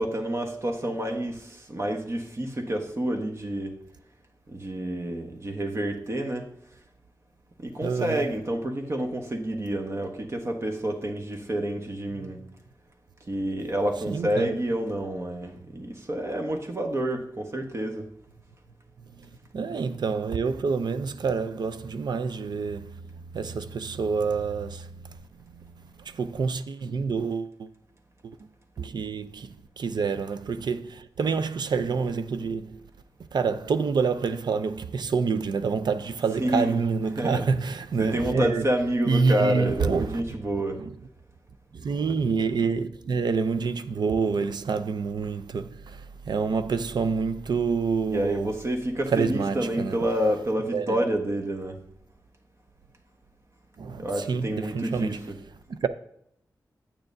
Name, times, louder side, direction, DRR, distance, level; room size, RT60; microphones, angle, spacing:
voice 1, 0.0-3.8 4.5-6.5 7.6-12.4 13.3-18.1 36.4-36.8 37.2-37.5 38.0-40.8 48.1-51.8 54.0-55.1, right 1 dB, 35° right, 1.2 m, -28 dB
voice 2, 7.8-8.2 12.2-12.3 14.1-14.6 19.1-27.7 28.2-28.5 28.8-32.8 33.3-38.6 39.1-40.2 40.8-40.9 41.7-48.5 49.1-50.0 50.7-51.0 53.8-55.2 55.7-55.9, right 5 dB, 75° right, 0.5 m, -28 dB
8.9 x 8.7 x 2.6 m
wide cardioid pair, 125°, 7 cm